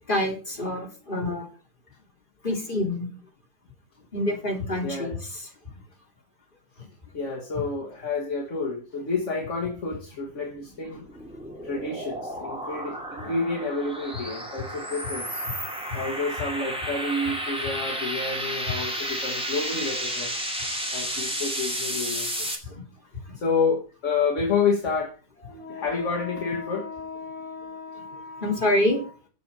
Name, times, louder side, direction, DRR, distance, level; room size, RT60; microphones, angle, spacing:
voice 1, 0.1-1.5 2.4-3.1 4.1-5.2 22.6-22.8 23.3-23.4 28.4-29.0, left 1 dB, 35° left, 3.8 m, -26 dB
voice 2, 4.8-5.2 6.8-6.9 7.1-11.1 11.6-15.4 15.9-20.4 20.9-22.7 23.4-29.1, left 4 dB, 60° left, 1.9 m, -30 dB
sound 1, 10.5-22.6, equal, 5° right, 2.5 m, -32 dB
8.6 x 7.0 x 7.2 m
omnidirectional pair, 1.5 m